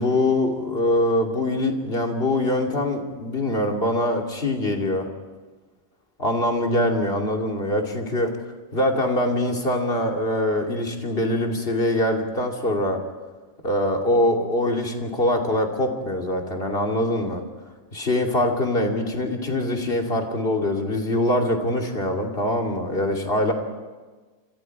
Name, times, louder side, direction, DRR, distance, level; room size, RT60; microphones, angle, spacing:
voice 1, 0.0-5.1 6.2-8.3 8.7-13.0 13.6-17.4 17.9-23.5, left 1 dB, 45° left, 2 dB, 2.9 m, -23 dB
28.0 x 26.5 x 4.7 m, 1.3 s
omnidirectional pair, 1.4 m